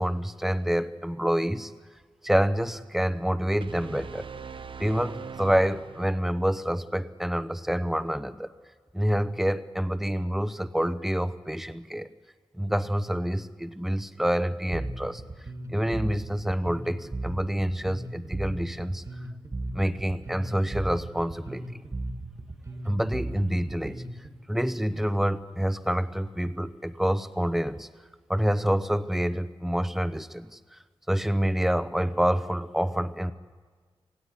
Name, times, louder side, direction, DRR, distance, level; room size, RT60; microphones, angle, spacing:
voice 1, 0.0-1.7 2.2-4.3 4.8-8.5 8.9-12.1 12.5-15.2 15.7-19.0 19.7-21.8 22.8-24.0 24.5-27.9 28.3-30.8 31.1-33.3, equal, 5° right, 12 dB, 0.9 m, -27 dB
sound 1, 3.6-6.5, right 6 dB, 65° right, 0.7 m, -42 dB
Bass guitar, 14.7-24.3, right 2 dB, 35° right, 1.9 m, -36 dB
26.0 x 16.5 x 9.9 m, 1.5 s
wide cardioid pair, 120°, 9 cm